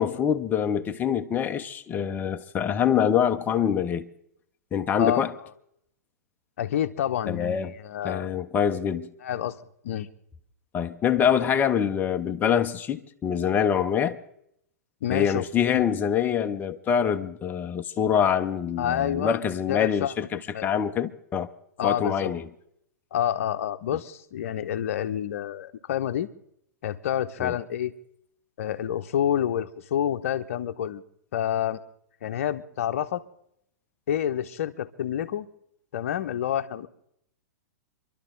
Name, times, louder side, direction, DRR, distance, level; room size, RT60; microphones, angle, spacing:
voice 1, 0.0-4.1 4.7-5.3 7.3-7.7 8.0-9.1 10.7-14.2 15.1-21.5 21.8-22.5 27.4-27.5, left 8 dB, 20° left, 0.8 m, -25 dB
voice 2, 6.6-8.3 9.2-9.6 9.8-10.1 15.0-15.8 18.8-19.4 19.7-20.7 21.8-22.3 23.1-26.3 26.8-27.9 28.6-31.0 31.3-31.8 32.2-33.2 34.1-35.5 35.9-36.9, left 10 dB, 55° left, 0.9 m, -28 dB
26.5 x 12.0 x 3.9 m
figure-of-eight pair, 105°, 9 cm